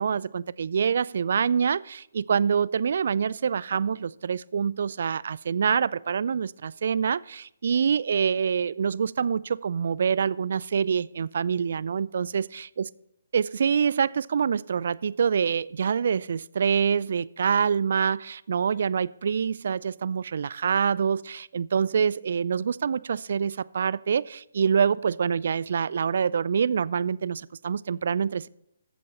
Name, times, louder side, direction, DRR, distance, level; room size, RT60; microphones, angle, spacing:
voice 1, 0.0-12.4 13.3-28.5, right 6 dB, 60° right, 21 dB, 0.3 m, -26 dB
14.5 x 8.4 x 4.2 m, 0.80 s
figure-of-eight pair, 135°, 0 cm